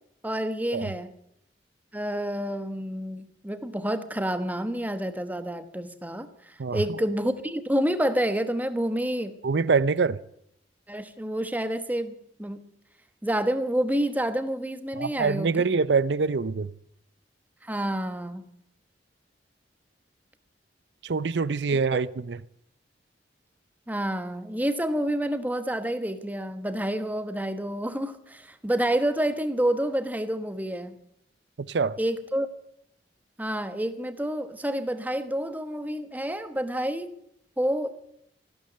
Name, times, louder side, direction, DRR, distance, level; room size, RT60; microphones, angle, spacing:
voice 1, 0.2-1.1 1.9-6.3 6.7-9.3 10.9-12.1 12.4-12.6 13.2-15.6 17.6-18.4 23.9-31.0 32.0-32.5 33.4-37.1 37.6-38.0, right 1 dB, 10° right, 1.1 m, -28 dB
voice 2, 9.4-10.2 15.0-16.7 21.0-22.4 31.6-32.0, right 4 dB, 70° right, 0.6 m, -25 dB
14.5 x 12.0 x 7.8 m
head